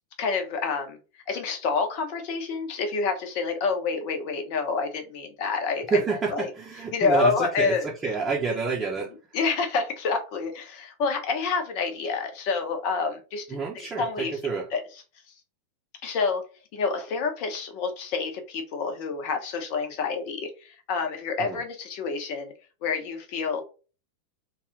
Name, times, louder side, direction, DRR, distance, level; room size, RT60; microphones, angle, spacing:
voice 1, 0.2-1.0 1.3-6.0 6.3-6.5 6.9-7.9 9.3-14.4 14.7-14.8 16.0-16.4 16.7-22.5 22.8-23.6, left 4 dB, 45° left, 0.9 m, -28 dB
voice 2, 5.9-9.1 13.5-14.7 21.4-21.6, right 4 dB, 15° right, 0.9 m, -28 dB
3.2 x 2.5 x 3.7 m
figure-of-eight pair, 90°, 0 cm